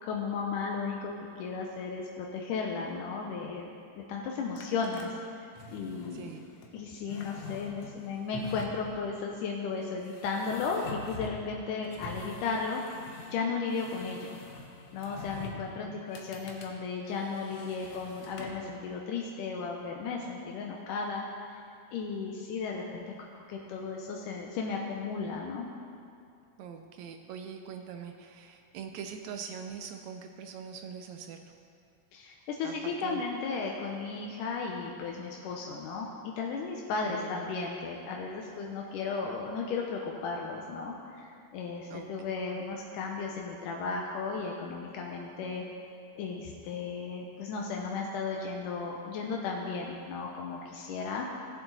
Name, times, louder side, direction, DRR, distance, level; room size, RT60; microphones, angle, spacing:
voice 1, 0.0-3.7 4.0-5.1 5.7-6.3 6.7-12.8 13.3-14.3 14.9-21.6 21.9-23.1 23.3-25.7 32.1-45.6 46.2-51.3, left 4 dB, 80° left, 0 dB, 2.3 m, -35 dB
sound 1, 4.6-5.1 5.5-6.7 7.0-9.0 10.0-11.5 11.8-13.4 13.7-15.7 16.1-16.7 17.0-18.7, left 3 dB, 65° left, 1.7 m, -45 dB
voice 2, 6.1-6.5 15.3-15.5 15.8-16.1 26.6-31.5 32.6-33.2 37.0-37.5 41.9-42.1 42.5-42.7, right 7 dB, 80° right, 6 dB, 1.6 m, -43 dB
18.0 x 7.0 x 4.0 m, 2.4 s
omnidirectional pair, 3.7 m